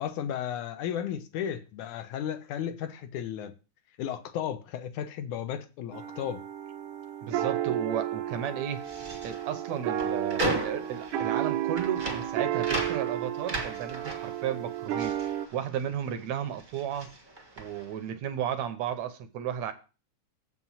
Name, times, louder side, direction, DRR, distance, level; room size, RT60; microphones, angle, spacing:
voice 1, 0.0-3.5 4.0-6.4, left 9 dB, 75° left, 2.3 m, -34 dB
sound 1, 5.9-15.5, right 12 dB, 85° right, 2.4 m, -32 dB
voice 2, 7.2-17.1 17.6-19.7, right 9 dB, 70° right, 1.9 m, -34 dB
sound 2, 8.7-16.2 16.5-18.0, right 1 dB, 25° right, 1.0 m, -36 dB
7.7 x 6.1 x 5.5 m
omnidirectional pair, 3.6 m